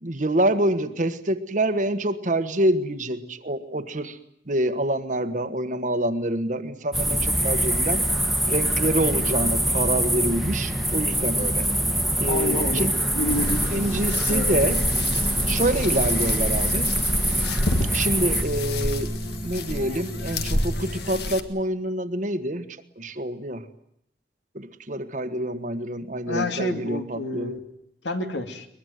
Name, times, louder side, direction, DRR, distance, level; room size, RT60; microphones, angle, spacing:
voice 1, 0.0-4.2 4.5-8.0 8.5-11.7 12.2-13.0 13.7-14.8 15.5-16.9 17.9-19.1 19.4-22.7 23.0-23.7 24.5-27.5, right 1 dB, 45° right, 10 dB, 1.4 m, -26 dB
sound 1, 6.9-18.4, right 1 dB, ahead, 1.4 m, -24 dB
voice 2, 12.3-12.8 13.1-13.6 14.3-14.7 26.3-27.6 28.0-28.7, left 1 dB, 75° left, 6 dB, 2.6 m, -29 dB
sound 2, 12.4-21.3, equal, 30° left, 3.2 m, -36 dB
sound 3, 13.3-21.4, left 1 dB, 60° left, 1.8 m, -29 dB
22.0 x 22.0 x 9.4 m, 0.73 s
head